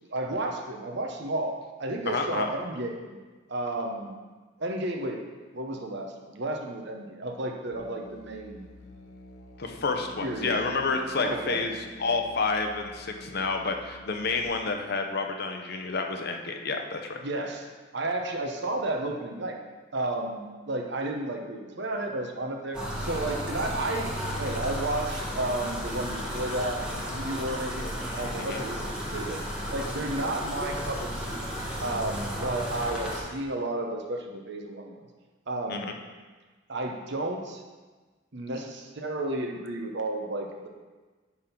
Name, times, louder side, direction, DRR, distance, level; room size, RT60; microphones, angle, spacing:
voice 1, 0.1-3.2 3.5-4.1 4.6-5.2 5.5-8.7 10.2-10.6 11.2-11.6 17.2-17.7 17.9-19.6 19.9-27.9 28.1-29.4 29.7-31.4 31.8-35.0 35.5-35.9 36.7-37.6 38.3-40.7, right 2 dB, 60° right, 2 dB, 1.0 m, -32 dB
voice 2, 2.1-2.5 9.6-11.7 12.0-17.2 28.4-28.6 35.7-35.9, left 4 dB, 55° left, 4 dB, 0.8 m, -29 dB
Musical instrument, 7.7-14.5, left 1 dB, 80° left, 0.9 m, -49 dB
sound 1, 22.7-33.2, equal, 5° right, 1.5 m, -33 dB
9.7 x 3.7 x 5.9 m, 1.3 s
head